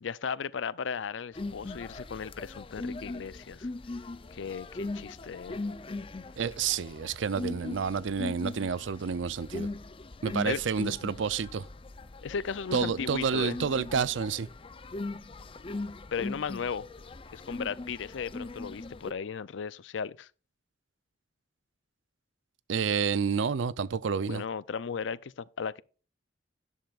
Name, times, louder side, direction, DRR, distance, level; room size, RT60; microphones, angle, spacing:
voice 1, 0.0-3.7 4.3-5.6 10.4-10.6 12.2-13.6 16.1-16.9 17.3-20.3 24.2-25.8, left 6 dB, 85° left, 0.5 m, -36 dB
sound 1, 1.3-19.1, left 2 dB, 30° left, 0.5 m, -40 dB
voice 2, 6.4-9.7 10.2-11.7 12.7-14.5 22.7-24.4, right 6 dB, 85° right, 0.5 m, -29 dB
11.5 x 11.0 x 2.4 m
head